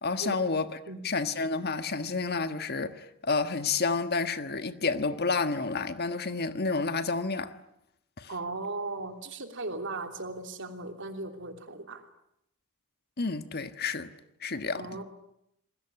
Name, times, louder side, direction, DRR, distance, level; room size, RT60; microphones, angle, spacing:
voice 1, 0.0-0.7 1.0-7.5 8.2-8.3 13.2-14.1 14.4-14.8, left 4 dB, 45° left, 1.5 m, -30 dB
voice 2, 8.3-12.0 14.7-15.0, right 2 dB, 60° right, 3.2 m, -37 dB
27.5 x 21.0 x 9.8 m
head